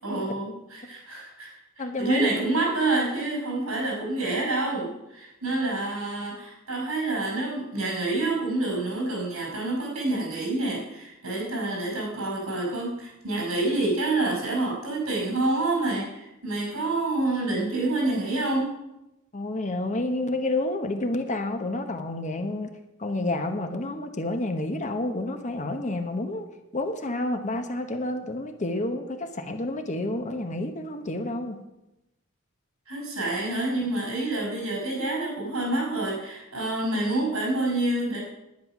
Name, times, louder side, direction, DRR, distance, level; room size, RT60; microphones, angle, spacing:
voice 1, 0.0-18.7 32.9-38.2, right 2 dB, 80° right, -2 dB, 5.2 m, -28 dB
voice 2, 1.8-2.3 19.3-22.7 23.0-26.5 26.7-31.6, left 2 dB, 35° left, 6 dB, 1.1 m, -29 dB
10.5 x 9.9 x 6.0 m, 0.93 s
head